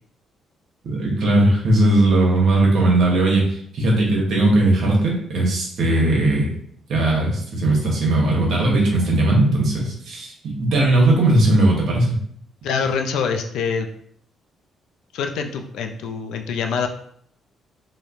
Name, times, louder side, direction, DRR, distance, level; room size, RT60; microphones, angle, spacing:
voice 1, 0.8-6.5 6.9-10.3 10.6-12.2, right 2 dB, 70° right, -2 dB, 0.9 m, -18 dB
voice 2, 12.6-13.9 15.1-16.9, left 6 dB, 85° left, 5 dB, 0.3 m, -25 dB
3.1 x 2.1 x 2.4 m, 0.64 s
cardioid pair, 90°, 0 cm